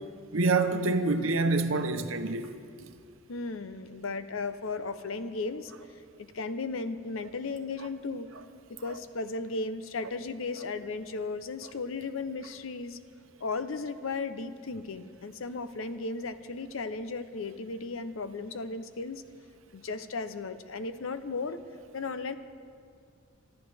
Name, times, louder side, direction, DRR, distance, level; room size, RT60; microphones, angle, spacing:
voice 1, 0.3-2.5, right 3 dB, 75° right, 0.9 m, -26 dB
voice 2, 3.3-5.7 6.2-8.3 8.7-13.0 13.4-19.2 19.7-21.6 21.9-22.4, left 3 dB, 75° left, 0.7 m, -35 dB
24.5 x 13.5 x 3.4 m
head